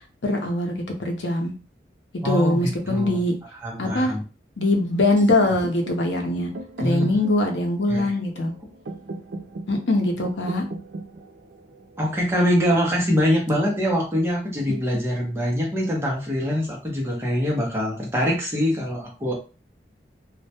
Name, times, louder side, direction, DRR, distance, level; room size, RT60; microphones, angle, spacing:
voice 1, 0.2-1.5 2.2-3.3 3.8-4.1 4.6-6.5 6.8-8.5 9.7-10.6, left 1 dB, 85° left, 3 dB, 0.6 m, -22 dB
voice 2, 2.2-3.2 3.6-4.2 6.8-7.2 7.9-8.1 12.0-19.3, equal, 15° right, -2 dB, 0.6 m, -24 dB
sound 1, 5.2-13.1, right 1 dB, 85° right, 0.5 m, -39 dB
2.1 x 2.1 x 2.8 m, 0.34 s
head